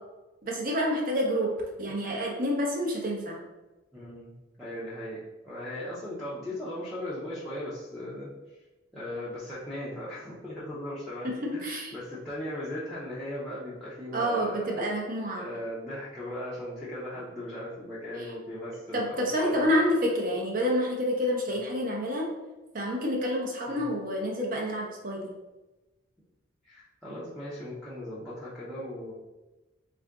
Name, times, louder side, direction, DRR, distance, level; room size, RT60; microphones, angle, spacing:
voice 1, 0.4-1.5 1.8-3.4 11.2-11.9 14.1-15.5 18.9-22.3 22.7-25.3, equal, 40° right, -1 dB, 0.6 m, -28 dB
voice 2, 3.9-4.3 4.6-8.6 8.9-14.8 15.4-19.6 23.7-23.8 26.6-29.1, left 1 dB, ahead, -10 dB, 0.6 m, -38 dB
3.6 x 2.5 x 3.4 m, 1.1 s
head